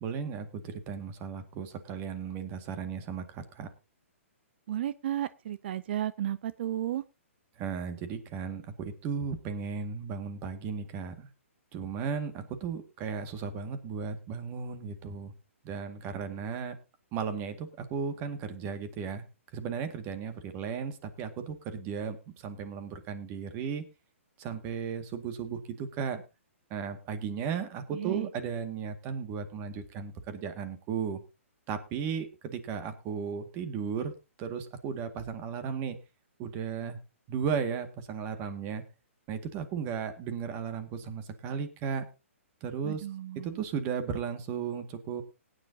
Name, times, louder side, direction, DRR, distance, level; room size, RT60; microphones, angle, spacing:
voice 1, 0.0-3.7 7.6-11.3 11.7-15.3 15.6-16.8 17.1-19.2 19.5-23.8 24.4-26.2 26.7-31.2 31.7-34.1 34.4-36.0 36.4-37.0 37.3-38.8 39.3-42.0 42.6-43.1 43.4-45.2, right 6 dB, 30° right, 9 dB, 1.9 m, -35 dB
voice 2, 4.7-7.0 27.9-28.3 42.8-43.6, right 11 dB, 50° right, 16 dB, 0.5 m, -33 dB
19.0 x 9.6 x 2.8 m, 0.27 s
hypercardioid pair, 140°, 7 cm